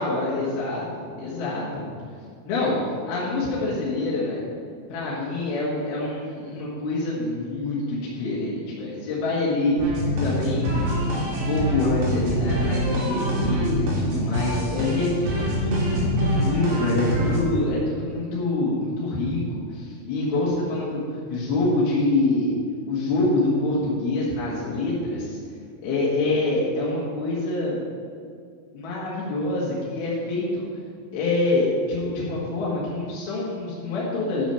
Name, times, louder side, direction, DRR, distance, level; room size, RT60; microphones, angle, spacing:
voice 1, 0.0-1.9 2.5-2.7 3.1-4.5 4.9-9.8 10.2-10.9 11.2-22.6 22.9-25.4 25.8-27.8 28.7-30.6 31.1-34.5, left 2 dB, 65° left, -7 dB, 3.3 m, -26 dB
sound 1, 9.8-17.4, equal, 85° right, 4.9 m, -25 dB
10.5 x 7.1 x 5.7 m, 2.2 s
omnidirectional pair, 5.1 m